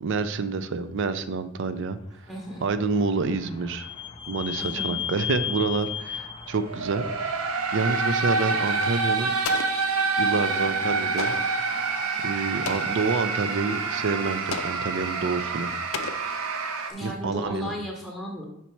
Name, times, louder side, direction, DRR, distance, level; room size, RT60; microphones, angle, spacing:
voice 1, 0.0-2.0 2.6-3.9 4.3-9.3 10.2-11.4 12.2-15.7 17.0-17.7, right 4 dB, 60° right, 12 dB, 0.4 m, -28 dB
voice 2, 2.3-2.7 4.6-5.0 16.9-18.4, equal, ahead, -1 dB, 0.8 m, -35 dB
Vehicle / Squeak, 2.4-8.0, left 9 dB, 25° left, 0.4 m, -35 dB
sound 1, 6.6-16.9, right 4 dB, 85° right, 0.8 m, -27 dB
Explosion, 9.4-10.3 11.2-11.7 12.6-13.2 14.5-15.0 15.9-16.8, left 7 dB, 75° left, 0.5 m, -36 dB
5.8 x 4.1 x 4.4 m, 0.79 s
head